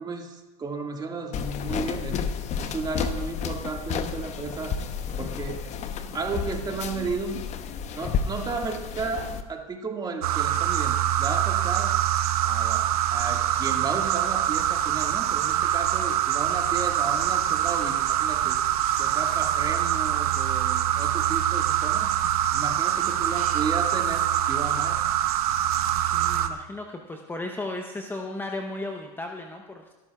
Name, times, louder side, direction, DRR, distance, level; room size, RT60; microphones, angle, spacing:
voice 1, 0.0-4.8 5.2-5.7 6.1-7.4 7.9-11.9 12.4-12.8 13.1-18.6 19.0-22.1 22.5-25.0, right 4 dB, 20° right, 2 dB, 1.9 m, -33 dB
sound 1, 1.3-9.4, left 7 dB, 35° left, 0.9 m, -31 dB
sound 2, 10.2-26.5, right 11 dB, 75° right, 0.9 m, -24 dB
voice 2, 26.0-29.9, left 2 dB, 10° left, 3 dB, 0.9 m, -35 dB
20.5 x 13.0 x 2.4 m, 1.1 s
hypercardioid pair, 105°, 19 cm